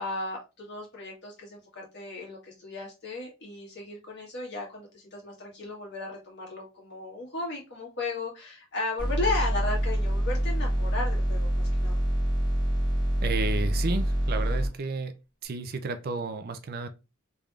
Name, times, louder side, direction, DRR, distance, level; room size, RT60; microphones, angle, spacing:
voice 1, 0.0-12.0, left 2 dB, 50° left, 1.7 m, -35 dB
sound 1, 9.0-14.7, right 1 dB, 20° left, 1.5 m, -26 dB
voice 2, 13.2-15.1 15.4-16.9, right 3 dB, 45° right, 0.4 m, -32 dB
3.4 x 3.3 x 2.4 m
head